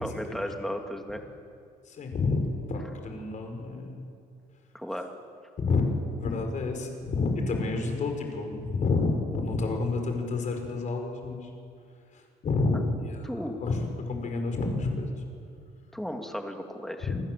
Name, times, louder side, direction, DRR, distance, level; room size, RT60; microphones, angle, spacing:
voice 1, 0.0-1.2 4.7-5.1 13.2-13.6 15.9-17.1, equal, ahead, 4 dB, 2.6 m, -35 dB
voice 2, 1.9-4.0 5.6-5.9 6.2-11.5 12.1-13.2 13.6-13.8 14.1-15.1 17.1-17.2, left 3 dB, 45° left, 4 dB, 5.3 m, -29 dB
28.5 x 20.0 x 7.7 m, 2.3 s
cardioid pair, 110°, 17 cm